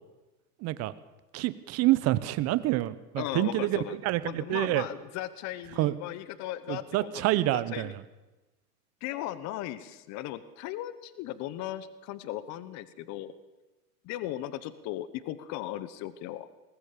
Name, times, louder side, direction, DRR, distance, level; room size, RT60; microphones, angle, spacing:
voice 1, 0.6-0.9 1.3-4.8 5.8-5.9 6.7-7.9, right 16 dB, 30° right, 16 dB, 1.0 m, -27 dB
voice 2, 3.2-4.0 4.2-7.9 9.0-13.3 14.0-16.5, left 13 dB, 35° left, 15 dB, 1.2 m, -37 dB
20.5 x 18.5 x 6.9 m, 1.1 s
hypercardioid pair, 120°, 47 cm